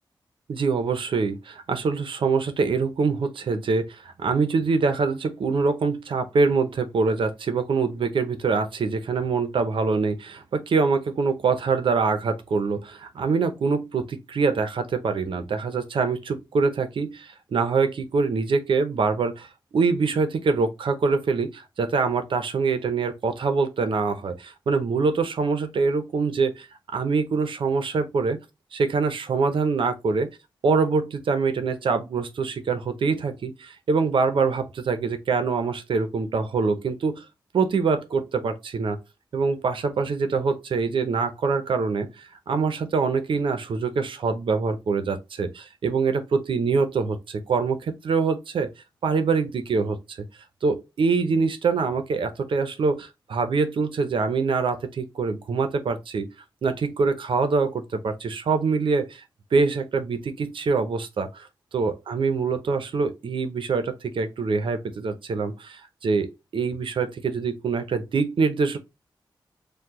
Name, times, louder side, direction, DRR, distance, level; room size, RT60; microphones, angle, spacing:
voice 1, 0.5-19.5 19.7-26.7 26.9-28.4 28.7-30.3 30.6-37.2 37.5-39.0 39.3-48.7 49.0-50.2 50.6-56.3 56.6-59.2 59.5-61.5 61.7-68.8, right 4 dB, 80° right, 0.8 m, -24 dB
4.7 x 2.3 x 3.6 m
wide cardioid pair, 115°, 9 cm